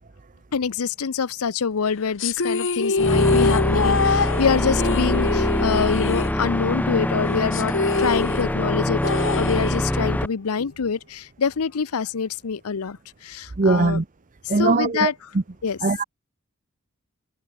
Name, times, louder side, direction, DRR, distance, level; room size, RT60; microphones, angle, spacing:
voice 1, 0.5-14.0 14.6-15.1 15.6-15.8, left 6 dB, 85° left, 0.6 m, -25 dB
sound 1, 2.2-6.9 7.1-7.2 7.5-10.2, left 4 dB, 60° left, 1.4 m, -24 dB
sound 2, 3.0-10.3, left 1 dB, 10° left, 0.7 m, -24 dB
voice 2, 13.6-14.0 14.5-15.1 15.8-16.0, right 3 dB, 40° right, 0.7 m, -20 dB
head